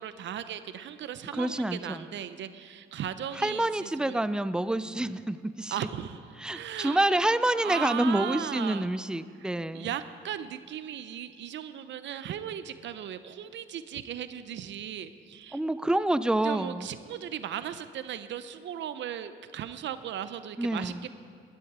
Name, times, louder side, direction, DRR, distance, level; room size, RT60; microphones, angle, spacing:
voice 1, 0.0-4.2 5.7-6.2 6.5-7.0 7.6-8.9 9.4-15.6 16.4-21.1, right 10 dB, 65° right, 12 dB, 0.7 m, -37 dB
voice 2, 1.3-2.0 3.4-5.8 6.4-9.9 15.5-16.9 20.6-21.0, right 1 dB, 5° right, 14 dB, 0.4 m, -28 dB
17.0 x 11.5 x 4.8 m, 2.2 s
cardioid pair, 90°, 20 cm